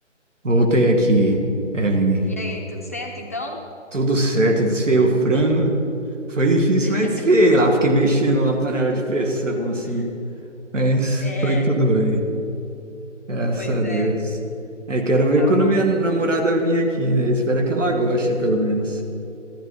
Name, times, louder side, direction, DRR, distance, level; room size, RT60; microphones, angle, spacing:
voice 1, 0.4-1.4 1.7-2.3 3.9-5.7 6.3-10.1 10.7-12.2 13.3-14.2 14.9-19.0, right 1 dB, 75° right, 2 dB, 2.3 m, -19 dB
voice 2, 2.2-3.6 6.8-7.3 9.8-10.1 11.2-11.8 13.6-14.2 15.3-15.8, left 1 dB, 10° left, -2 dB, 0.6 m, -33 dB
14.5 x 13.0 x 5.0 m, 2.8 s
figure-of-eight pair, 155°, 37 cm